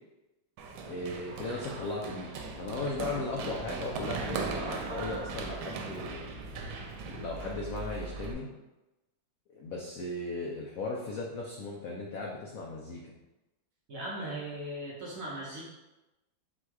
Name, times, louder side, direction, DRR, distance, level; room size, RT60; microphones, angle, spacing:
Run, 0.6-8.3, right 4 dB, 90° right, 1.4 m, -38 dB
voice 1, 0.7-2.3 2.6-6.3 7.1-8.5 9.5-13.0, left 3 dB, 80° left, -2 dB, 0.7 m, -37 dB
voice 2, 13.9-15.6, right 1 dB, 60° right, -4 dB, 1.0 m, -38 dB
4.3 x 2.3 x 4.6 m, 1.0 s
omnidirectional pair, 2.1 m